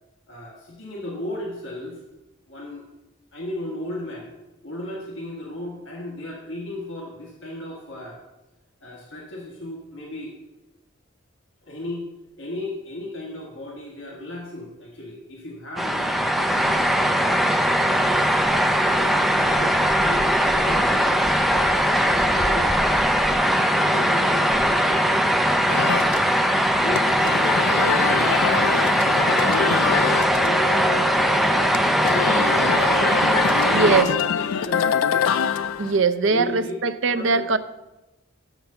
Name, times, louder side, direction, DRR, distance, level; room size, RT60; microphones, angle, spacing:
voice 1, 0.3-2.0 2.5-2.8 3.3-4.3 4.6-8.2 8.8-10.3 11.6-12.0 12.4-17.3 17.7-21.2 22.3-22.7 23.4-26.2 26.8-28.7 29.1-33.1 33.6-35.5 36.3-36.7 37.1-37.4, left 1 dB, 60° left, -3 dB, 1.5 m, -35 dB
sound 1, 15.8-34.0, equal, ahead, 0.3 m, -20 dB
sound 2, 25.7-36.0, left 8 dB, 80° left, 0.3 m, -26 dB
voice 2, 33.7-34.1 35.8-37.6, right 4 dB, 60° right, 11 dB, 0.5 m, -21 dB
6.5 x 6.0 x 6.8 m, 1.0 s
head